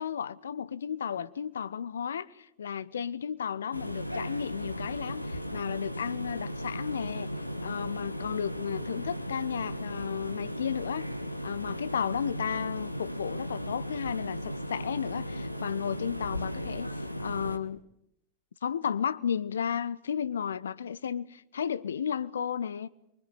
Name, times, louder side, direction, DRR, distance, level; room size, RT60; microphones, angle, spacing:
voice 1, 0.0-11.1 11.4-17.8 18.6-22.9, left 8 dB, 65° left, 1.0 m, -33 dB
sound 1, 3.7-17.6, equal, 90° left, 1.5 m, -36 dB
25.0 x 24.0 x 9.5 m
figure-of-eight pair, 90°, 0 cm